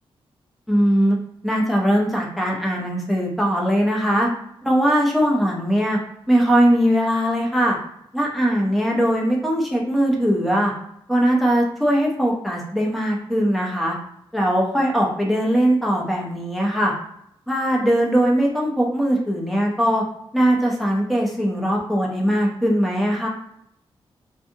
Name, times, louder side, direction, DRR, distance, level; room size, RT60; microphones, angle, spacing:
voice 1, 0.7-1.2 1.4-4.3 4.6-6.0 6.3-7.8 8.1-10.7 11.1-14.0 14.3-16.9 17.5-20.0 20.3-23.3, equal, ahead, -2 dB, 0.5 m, -20 dB
2.6 x 2.4 x 2.6 m, 0.73 s
wide cardioid pair, 160°, 10 cm